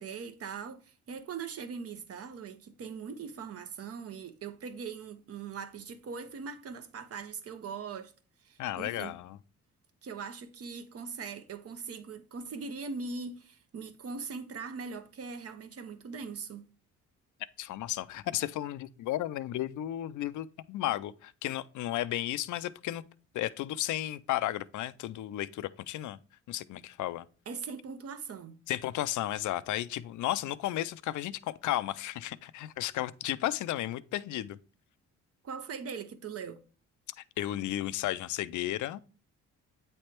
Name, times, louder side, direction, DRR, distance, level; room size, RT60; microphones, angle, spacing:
voice 1, 0.0-8.1 8.4-9.1 10.0-16.7 27.5-28.6 35.4-36.6, right 5 dB, 50° right, 0.9 m, -41 dB
voice 2, 8.6-9.4 17.6-23.0 23.3-26.2 26.5-27.3 28.7-34.6 37.4-39.0, left 14 dB, 75° left, 0.5 m, -33 dB
8.4 x 3.3 x 4.4 m
cardioid pair, 90°, 30 cm